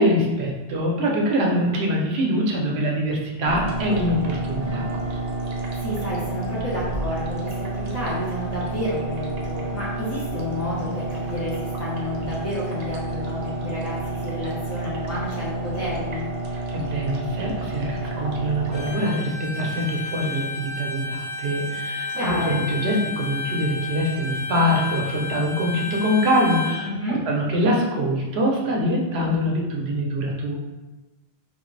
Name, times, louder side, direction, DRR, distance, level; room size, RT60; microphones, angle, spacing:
voice 1, 0.0-4.9 16.7-30.6, equal, 80° right, -1 dB, 0.9 m, -24 dB
sound 1, 3.5-18.9, right 2 dB, 50° right, 0.5 m, -30 dB
sound 2, 4.5-9.5, right 1 dB, 35° left, 1.2 m, -43 dB
voice 2, 5.6-16.3 22.1-22.6 26.8-27.3, left 1 dB, 15° left, -10 dB, 0.9 m, -30 dB
Bowed string instrument, 18.7-26.8, left 4 dB, 50° left, 1.0 m, -31 dB
3.1 x 2.4 x 3.1 m, 1.1 s
omnidirectional pair, 1.1 m